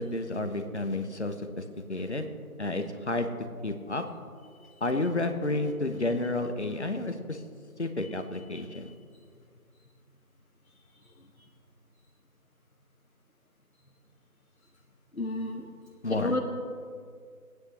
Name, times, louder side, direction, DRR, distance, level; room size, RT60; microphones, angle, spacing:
voice 1, 0.0-1.6 1.9-2.3 2.6-3.3 3.6-4.0 4.8-7.4 7.8-8.9 16.0-16.3, left 2 dB, 50° left, 7 dB, 1.0 m, -31 dB
voice 2, 15.1-15.7 16.1-16.4, left 2 dB, 70° left, 0 dB, 1.1 m, -31 dB
20.5 x 9.4 x 3.3 m, 2.1 s
figure-of-eight pair, 170°, 43 cm